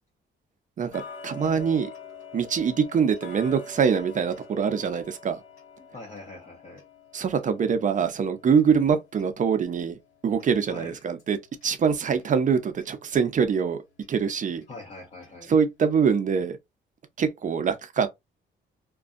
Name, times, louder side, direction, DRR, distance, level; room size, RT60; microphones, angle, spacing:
voice 1, 0.8-1.9 2.3-5.4 7.1-10.0 10.2-11.4 11.6-13.8 14.1-14.6 15.5-16.6 17.2-18.1, right 6 dB, 40° right, 0.5 m, -24 dB
Tick-tock, 0.9-11.8 12.2-12.3 12.8-12.9 13.4-13.5 14.0-14.1 14.6-14.7 15.2-15.3 15.8-15.9, left 3 dB, 80° left, 1.3 m, -46 dB
voice 2, 5.8-6.8 10.7-10.9 14.7-15.5, left 2 dB, 30° left, 0.9 m, -43 dB
2.5 x 2.2 x 2.4 m
cardioid pair, 90°, 20 cm